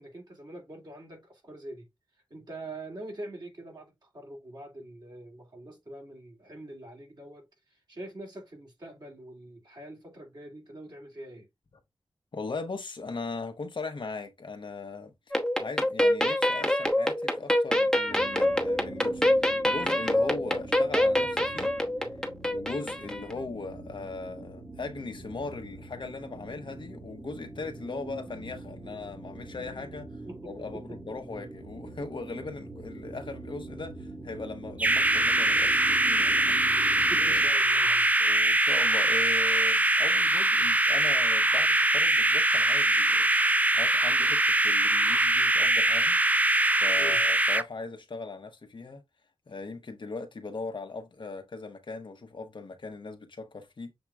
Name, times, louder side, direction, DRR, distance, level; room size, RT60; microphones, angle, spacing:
voice 1, 0.0-1.9 2.3-11.5 30.3-31.0 36.9-38.1 47.0-47.2, right 1 dB, 50° right, 2.6 m, -44 dB
voice 2, 12.3-21.7 22.4-37.4 38.2-43.3 43.7-46.2 46.7-49.0 49.5-53.9, left 3 dB, 65° left, 0.9 m, -39 dB
sound 1, 15.3-23.4, left 1 dB, 5° left, 1.0 m, -26 dB
sound 2, 18.1-37.5, right 2 dB, 35° right, 1.8 m, -44 dB
sound 3, 34.8-47.6, right 2 dB, 15° right, 0.4 m, -23 dB
7.0 x 2.9 x 2.3 m
cardioid pair, 55°, 9 cm